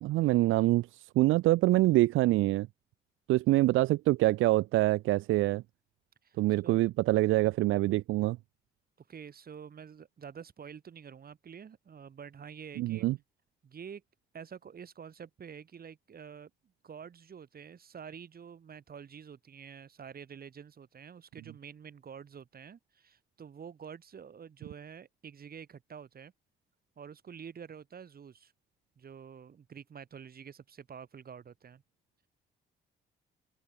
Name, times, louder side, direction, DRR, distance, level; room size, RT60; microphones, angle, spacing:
voice 1, 0.0-2.7 3.3-5.6 6.4-8.4 12.8-13.2, right 17 dB, 85° right, 0.6 m, -25 dB
voice 2, 6.2-6.8 9.0-13.1 13.6-14.0 14.3-16.5 16.8-26.3 27.0-28.5 29.0-31.8, right 7 dB, 50° right, 7.2 m, -48 dB
open air
cardioid pair, 90°, 20 cm